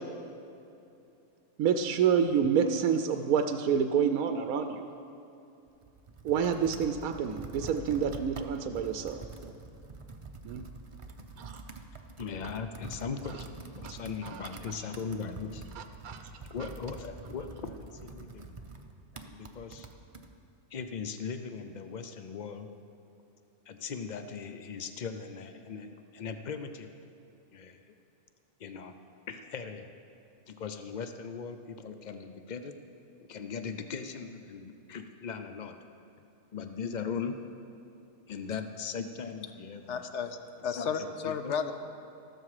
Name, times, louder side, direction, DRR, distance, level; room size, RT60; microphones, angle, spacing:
voice 1, 1.6-4.9 6.2-9.5 10.4-10.6 11.4-11.6 13.8-13.9 15.8-16.2, right 7 dB, 75° right, 7 dB, 1.0 m, -28 dB
Computer keyboard, 5.7-20.3, right 3 dB, 35° right, 0.5 m, -46 dB
voice 2, 12.2-13.5 13.8-15.6 16.5-18.6 19.1-19.9 20.7-22.7 23.7-26.9 27.5-27.8 28.6-28.9 29.3-29.9 30.5-32.7 33.3-35.8 36.5-37.4 38.3-40.0 40.8-41.5, left 6 dB, 80° left, 8 dB, 0.4 m, -39 dB
voice 3, 39.9-41.7, left 6 dB, 60° left, 8 dB, 0.9 m, -33 dB
14.0 x 13.0 x 4.9 m, 2.7 s
omnidirectional pair, 1.6 m